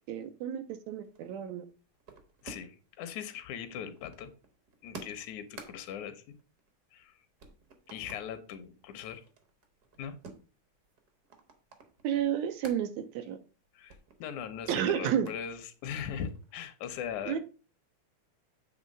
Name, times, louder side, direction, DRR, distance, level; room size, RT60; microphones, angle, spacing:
voice 1, 0.1-1.7 12.0-13.4 14.7-15.3 17.3-17.4, right 9 dB, 80° right, 1.8 m, -31 dB
sound 1, 1.0-2.9 3.2-7.1 7.4-8.3 8.7-12.8 13.2-13.4 13.6-15.4 15.8-16.6, right 4 dB, 60° right, 1.0 m, -52 dB
voice 2, 2.4-4.3 4.8-6.4 6.9-7.3 7.9-9.2 10.0-10.2 13.7-17.4, left 8 dB, 80° left, 2.1 m, -40 dB
8.3 x 3.3 x 5.2 m
omnidirectional pair, 3.4 m